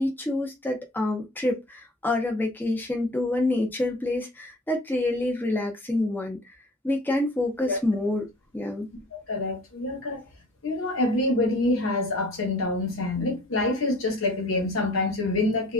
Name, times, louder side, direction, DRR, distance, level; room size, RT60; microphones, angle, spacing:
voice 1, 0.0-6.4 6.8-8.3 8.5-8.9, left 2 dB, 10° left, 0.5 m, -27 dB
voice 2, 9.3-10.2 10.6-15.7, left 2 dB, 85° left, 1.0 m, -26 dB
2.4 x 2.2 x 2.3 m
head